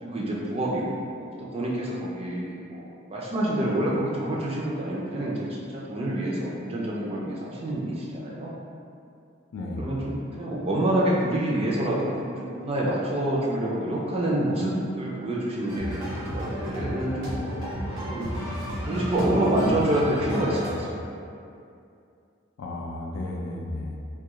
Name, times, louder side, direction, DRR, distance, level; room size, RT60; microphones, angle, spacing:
voice 1, 0.0-5.4 5.7-8.5 9.8-18.3 18.8-21.0, right 1 dB, 30° right, -5 dB, 0.4 m, -27 dB
voice 2, 9.5-9.9 22.6-24.0, left 1 dB, 90° left, -1 dB, 0.4 m, -33 dB
sound 1, 15.7-20.7, equal, 70° right, 0.7 m, -32 dB
2.3 x 2.3 x 2.9 m, 2.5 s
head